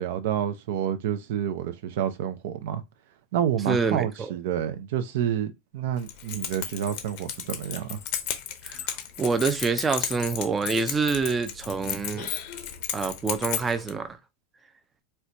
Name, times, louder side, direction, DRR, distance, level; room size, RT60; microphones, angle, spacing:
voice 1, 0.0-2.8 3.3-8.0, right 9 dB, 75° right, 0.5 m, -29 dB
voice 2, 3.7-4.3 8.6-8.9 9.2-12.3 12.9-14.2, right 4 dB, 15° right, 0.4 m, -26 dB
Keys jangling, 6.0-13.9, left 10 dB, 55° left, 0.6 m, -34 dB
4.3 x 2.2 x 2.6 m
supercardioid pair, 150°, 0 cm